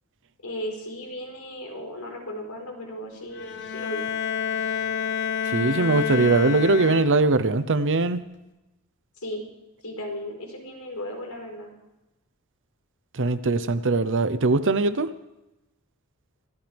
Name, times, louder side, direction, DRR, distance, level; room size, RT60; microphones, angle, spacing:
voice 1, 0.4-4.0 9.2-9.4 9.8-11.7, equal, 85° left, 1 dB, 4.7 m, -35 dB
Bowed string instrument, 3.3-7.5, left 7 dB, 55° left, 0.8 m, -29 dB
voice 2, 5.4-8.2 13.1-15.1, right 3 dB, 60° right, 13 dB, 0.8 m, -21 dB
26.5 x 13.5 x 3.5 m, 0.99 s
head